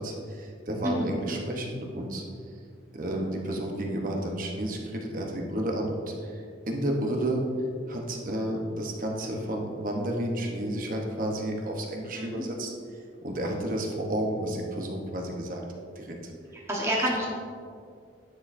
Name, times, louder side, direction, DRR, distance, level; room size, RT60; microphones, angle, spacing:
voice 1, 0.0-2.2 2.9-7.4 7.9-15.6 16.0-16.2, right 1 dB, 45° right, 1 dB, 1.0 m, -31 dB
voice 2, 12.1-12.4 16.7-17.3, equal, 15° right, -4 dB, 1.2 m, -28 dB
9.8 x 6.2 x 2.6 m, 2.2 s
head